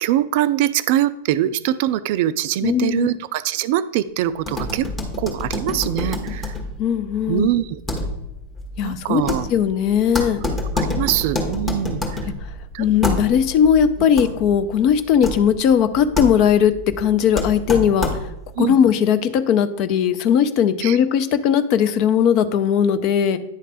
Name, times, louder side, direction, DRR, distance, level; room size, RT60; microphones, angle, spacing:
voice 1, 0.0-4.9 5.2-6.6 7.3-7.8 8.8-9.5 10.9-12.2 12.7-12.9 18.6-18.8 20.8-21.0, right 12 dB, 50° right, 15 dB, 0.3 m, -22 dB
voice 2, 2.6-3.1 6.8-7.5 8.8-9.2 9.5-10.4 12.8-18.1 18.6-23.4, left 8 dB, 40° left, 11 dB, 0.5 m, -18 dB
sound 1, 4.4-18.5, left 2 dB, 15° left, 1.5 m, -28 dB
9.6 x 3.2 x 5.0 m, 0.87 s
figure-of-eight pair, 90°, 0 cm